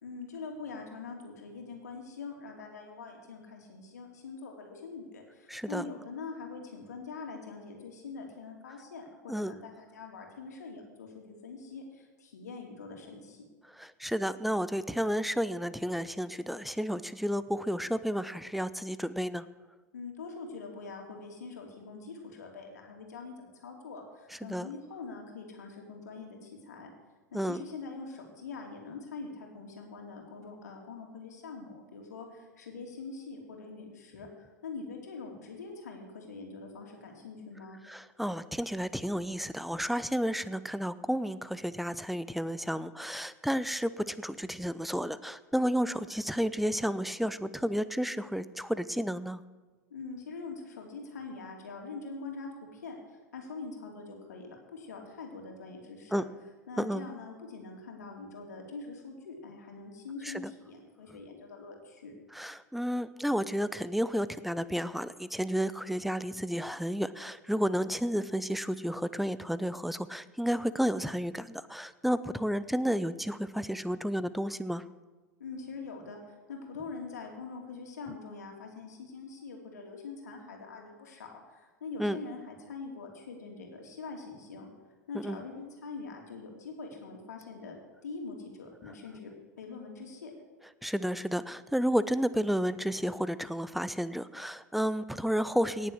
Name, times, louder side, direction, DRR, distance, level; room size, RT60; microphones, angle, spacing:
voice 1, 0.0-13.4 19.9-26.9 27.3-37.8 49.9-56.2 56.7-62.1 75.4-84.7 85.1-87.8 88.0-90.3, left 4 dB, 70° left, 2 dB, 2.7 m, -44 dB
voice 2, 5.5-5.8 9.3-9.5 13.7-19.4 24.3-24.7 27.3-27.6 37.8-49.4 56.1-56.2 56.8-57.0 60.2-60.5 62.3-74.8 82.0-82.2 85.1-85.4 90.8-95.9, equal, ahead, 16 dB, 0.5 m, -31 dB
18.0 x 7.1 x 6.4 m, 1.3 s
figure-of-eight pair, 90°, 9 cm